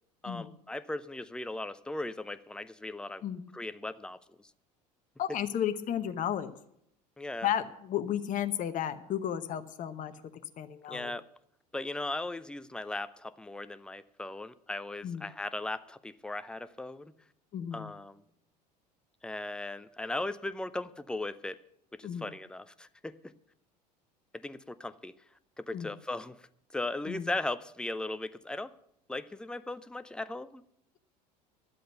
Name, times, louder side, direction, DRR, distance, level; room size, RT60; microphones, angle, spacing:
voice 1, 0.2-3.2 3.5-4.5 7.2-7.5 10.9-11.2 11.7-17.1 17.7-18.2 19.2-21.6 21.9-23.3 24.3-25.1 25.6-26.5 26.7-28.7 29.1-30.6, left 2 dB, 5° left, 14 dB, 0.6 m, -38 dB
voice 2, 5.2-6.5 7.4-10.1 10.6-11.1 15.0-15.2 17.5-17.9 22.0-22.3 25.7-25.9 27.1-27.3, left 10 dB, 40° left, 10 dB, 0.9 m, -33 dB
12.0 x 7.7 x 7.8 m, 0.74 s
hypercardioid pair, 70°, 21 cm